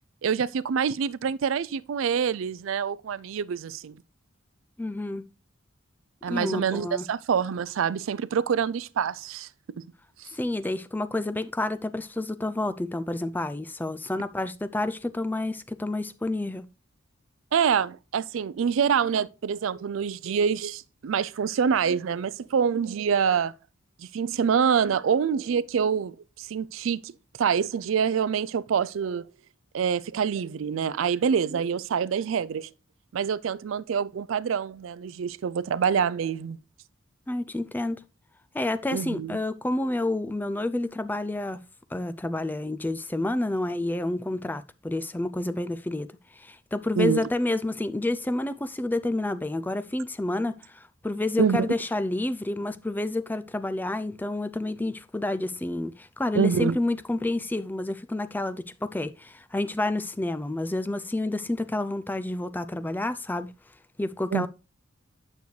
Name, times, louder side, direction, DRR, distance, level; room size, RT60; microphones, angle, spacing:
voice 1, 0.2-4.0 6.2-9.5 9.8-9.9 10.2-10.3 17.5-23.5 24.0-27.1 27.4-29.3 29.7-32.7 33.1-36.6 38.9-39.4 47.0-47.3 51.4-51.7 56.3-56.8 64.3-64.5, right 7 dB, 70° right, 0.4 m, -26 dB
voice 2, 4.8-5.2 6.3-7.1 10.3-16.6 37.3-38.0 38.5-41.6 41.9-46.1 46.4-63.5 64.0-64.5, left 2 dB, 10° left, 0.3 m, -29 dB
9.3 x 6.5 x 3.2 m
head